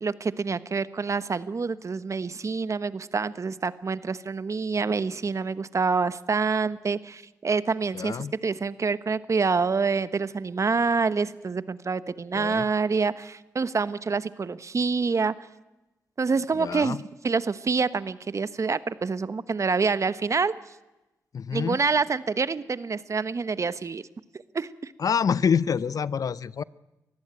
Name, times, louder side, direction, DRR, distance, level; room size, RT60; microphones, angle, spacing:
voice 1, 0.0-15.3 16.2-20.5 21.5-24.0 24.5-24.9, right 4 dB, 50° right, 15 dB, 1.1 m, -27 dB
voice 2, 7.9-8.3 12.3-12.6 16.6-17.0 21.3-21.8 25.0-26.6, left 6 dB, 60° left, 19 dB, 0.6 m, -26 dB
23.0 x 14.5 x 9.0 m, 1.0 s
supercardioid pair, 45°, 7 cm